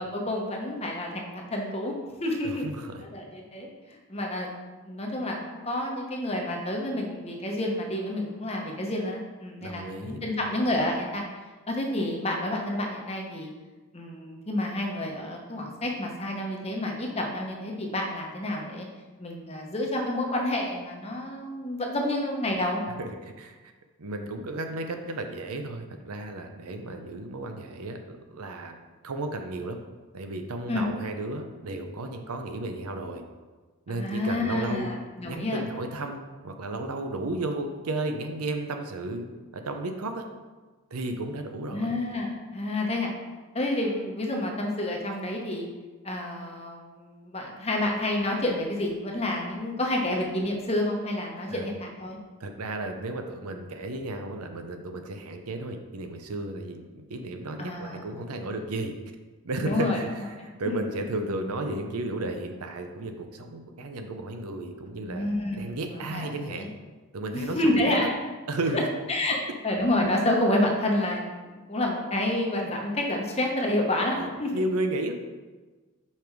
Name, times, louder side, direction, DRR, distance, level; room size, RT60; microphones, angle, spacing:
voice 1, 0.0-1.9 2.2-2.7 3.0-4.5 4.8-11.3 11.7-13.5 13.9-18.9 19.2-22.8 30.7-30.8 33.9-35.8 41.7-43.2 43.5-45.7 46.0-52.2 57.6-58.0 59.6-60.3 60.6-60.8 65.0-66.7 67.3-68.2 68.7-68.8 69.1-69.4 69.6-74.6, left 1 dB, 25° left, 0 dB, 1.0 m, -29 dB
voice 2, 2.4-3.0 9.6-10.3 23.0-23.6 24.0-28.8 29.0-29.8 30.1-33.2 33.9-34.9 35.3-39.3 39.5-40.3 40.9-42.0 51.5-51.7 52.4-58.9 59.4-66.7 67.1-68.1 68.5-68.9 74.1-75.1, right 2 dB, 85° right, 5 dB, 0.7 m, -33 dB
5.7 x 5.1 x 4.6 m, 1.3 s
head